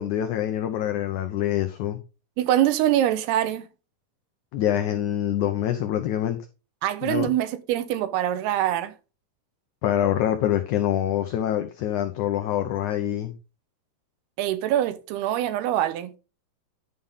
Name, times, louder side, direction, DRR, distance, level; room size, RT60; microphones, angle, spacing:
voice 1, 0.0-2.0 4.5-6.4 7.0-7.3 9.8-13.3, left 11 dB, 90° left, 1.7 m, -25 dB
voice 2, 2.4-3.6 6.8-8.9 14.4-16.1, right 12 dB, 85° right, 2.9 m, -24 dB
11.0 x 5.7 x 3.6 m
omnidirectional pair, 4.5 m